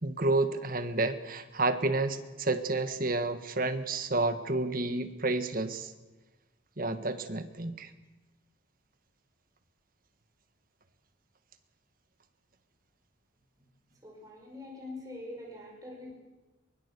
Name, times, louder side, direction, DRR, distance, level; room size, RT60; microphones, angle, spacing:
voice 1, 0.0-5.9 6.8-7.9, right 2 dB, 45° right, 9 dB, 1.6 m, -30 dB
voice 2, 14.0-16.1, left 2 dB, 20° right, -2 dB, 5.4 m, -44 dB
23.0 x 22.0 x 6.9 m, 1.2 s
head